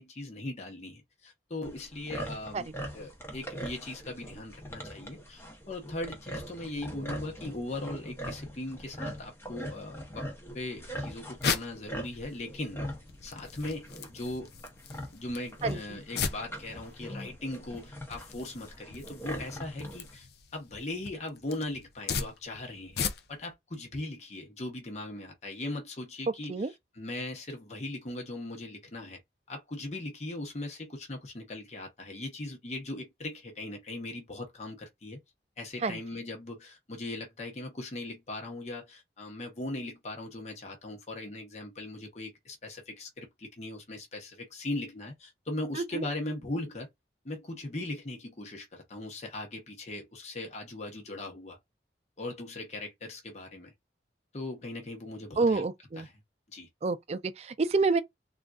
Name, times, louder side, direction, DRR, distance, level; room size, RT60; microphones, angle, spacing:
voice 1, 0.0-2.7 2.9-10.2 10.5-12.8 13.2-14.5 15.1-20.3 20.5-23.0 23.3-26.7 26.9-29.2 29.5-35.2 35.6-46.9 47.2-51.6 52.2-53.7 54.3-55.6 56.0-56.1 56.5-56.7, left 2 dB, 40° left, 1.0 m, -39 dB
sound 1, 1.6-20.1, equal, 15° left, 0.7 m, -42 dB
sound 2, 10.7-23.5, left 6 dB, 65° left, 0.6 m, -39 dB
voice 2, 15.6-16.0 26.5-26.7 35.8-36.0 45.8-46.1 55.4-56.1 56.8-58.0, right 3 dB, 35° right, 0.4 m, -28 dB
3.7 x 2.5 x 2.3 m
head